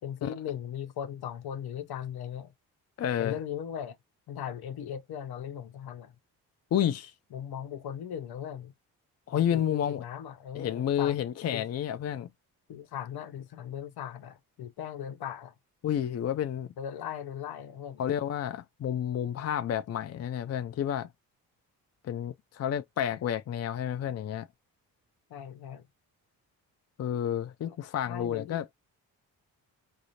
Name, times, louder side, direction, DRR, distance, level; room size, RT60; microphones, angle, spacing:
voice 1, 0.0-2.5 3.2-4.0 4.3-6.2 7.3-8.7 9.3-11.2 11.5-11.7 12.7-15.6 16.8-18.0 25.3-25.9 27.7-27.8 28.1-28.6, left 9 dB, 60° left, 0.8 m, -38 dB
voice 2, 3.0-3.3 6.7-7.1 9.3-10.0 10.5-12.3 15.8-16.7 18.0-21.1 22.0-24.5 27.0-28.7, left 10 dB, 40° left, 0.5 m, -30 dB
4.9 x 2.0 x 2.8 m
hypercardioid pair, 50°, 42 cm